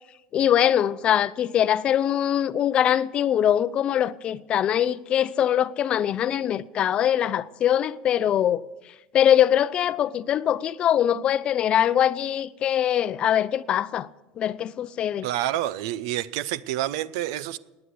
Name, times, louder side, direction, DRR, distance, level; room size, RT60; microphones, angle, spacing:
voice 1, 0.3-8.6 9.1-14.1 14.4-15.3, left 10 dB, 35° left, 0.6 m, -22 dB
voice 2, 15.2-17.6, right 13 dB, 80° right, 0.7 m, -28 dB
18.5 x 9.7 x 8.0 m
supercardioid pair, 135°, 3 cm